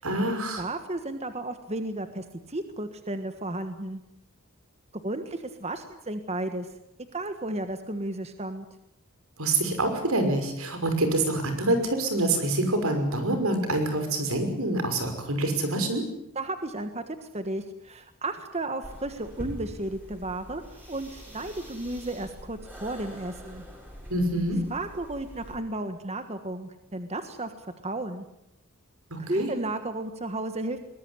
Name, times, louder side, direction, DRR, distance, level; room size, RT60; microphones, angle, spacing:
voice 1, 0.0-0.6 9.4-16.0 24.1-24.6 29.1-29.5, right 2 dB, 80° right, 7 dB, 5.9 m, -26 dB
voice 2, 0.6-4.0 5.0-6.7 7.1-8.6 16.3-20.6 20.9-23.6 24.7-28.3 29.2-30.8, right 2 dB, 30° right, 8 dB, 1.5 m, -33 dB
sound 1, 18.8-25.6, equal, 10° right, 7.2 m, -44 dB
22.5 x 20.0 x 9.9 m, 0.84 s
head